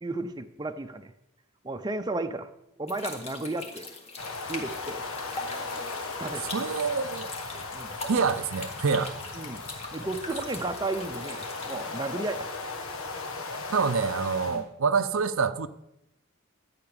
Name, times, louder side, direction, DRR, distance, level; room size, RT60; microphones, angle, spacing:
voice 1, 0.0-1.1 1.6-2.5 2.8-3.9 4.5-5.0 6.2-6.6 7.7-7.9 9.3-9.6 9.9-12.5 14.4-14.7, right 2 dB, 20° right, 0.6 m, -33 dB
Medium Speed Dropping Water, 2.9-11.8, left 2 dB, 30° left, 1.8 m, -42 dB
sound 1, 4.2-14.6, left 3 dB, 80° left, 1.6 m, -37 dB
voice 2, 6.5-7.3 8.1-9.1 13.7-15.7, right 5 dB, 75° right, 0.6 m, -26 dB
12.0 x 5.9 x 8.7 m
head